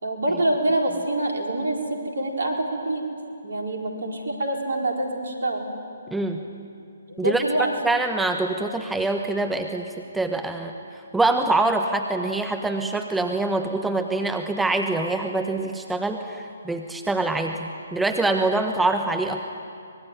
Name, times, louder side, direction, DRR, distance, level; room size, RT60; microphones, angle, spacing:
voice 1, 0.0-3.0 3.4-5.7 7.1-7.7, right 1 dB, 65° right, 1 dB, 4.6 m, -26 dB
voice 2, 6.1-6.4 7.2-7.4 7.8-10.7 11.1-19.4, right 2 dB, 5° right, 4 dB, 1.2 m, -24 dB
24.5 x 21.0 x 9.7 m, 2.4 s
figure-of-eight pair, 135°, 0 cm